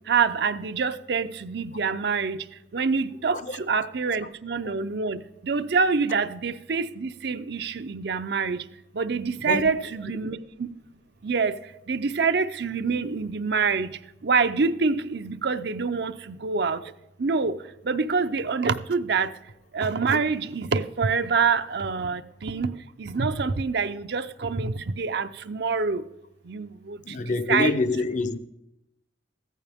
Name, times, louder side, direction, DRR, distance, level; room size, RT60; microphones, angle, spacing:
voice 1, 0.1-2.4 2.7-8.6 8.9-10.7 11.2-11.5 11.9-13.9 14.2-16.8 17.2-17.6 17.8-19.3 19.7-26.0 26.5-27.7, right 5 dB, 65° right, 0.6 m, -26 dB
voice 2, 27.1-28.4, left 3 dB, 45° left, 0.7 m, -26 dB
15.0 x 14.0 x 3.6 m
head